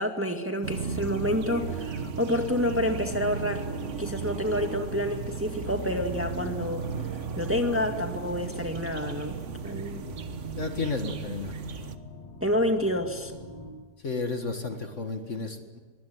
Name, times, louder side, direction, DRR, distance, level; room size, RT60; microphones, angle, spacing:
voice 1, 0.0-3.6 4.0-6.8 7.4-9.4 9.6-10.0 12.4-13.3, left 1 dB, 10° right, 4 dB, 1.8 m, -28 dB
sound 1, 0.6-12.0, right 5 dB, 50° right, 1.4 m, -35 dB
sound 2, 1.5-13.7, left 1 dB, 20° left, 7.0 m, -45 dB
voice 2, 10.6-11.6 14.0-15.8, left 4 dB, 45° left, 6 dB, 2.2 m, -32 dB
23.0 x 20.5 x 9.6 m, 1.4 s
omnidirectional pair, 1.8 m